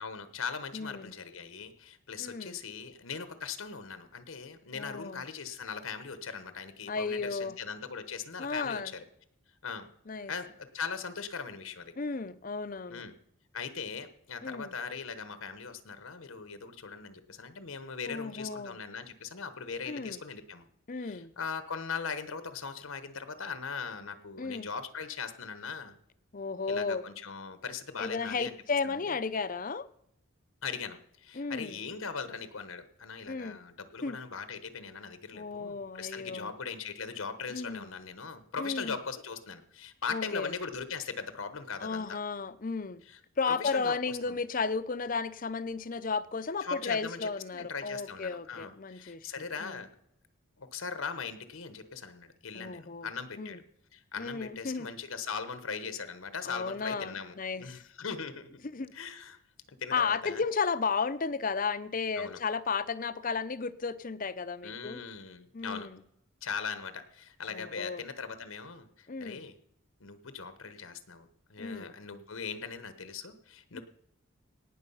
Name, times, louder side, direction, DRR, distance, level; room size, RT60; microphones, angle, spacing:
voice 1, 0.0-9.0 9.6-9.9 10.3-11.9 12.9-13.1 13.5-20.7 21.0-26.0 26.7-28.5 28.8-29.2 30.6-42.2 43.1-43.2 43.5-44.4 46.6-49.9 50.6-53.6 53.9-58.5 58.9-59.4 59.7-60.4 62.2-62.4 64.6-65.9 66.4-69.5 70.0-73.8, left 5 dB, 75° left, 1.0 m, -40 dB
voice 2, 0.7-1.1 2.2-2.6 4.7-5.2 6.9-7.6 8.4-9.0 10.1-10.3 12.0-13.0 14.4-14.8 18.0-18.8 19.9-20.2 20.9-21.3 24.4-24.7 26.3-27.0 28.0-29.9 31.4-31.8 33.3-33.6 34.0-34.2 35.3-36.5 37.5-37.9 38.6-39.0 40.1-40.5 41.8-43.0 43.4-49.3 49.6-49.8 52.5-53.1 53.4-53.6 54.2-54.9 56.5-57.8 58.7-58.9 59.9-65.0 65.5-66.0 67.5-68.0 69.1-69.4 71.6-71.9 73.7-73.8, left 4 dB, 40° left, 0.6 m, -34 dB
18.0 x 6.2 x 5.6 m
head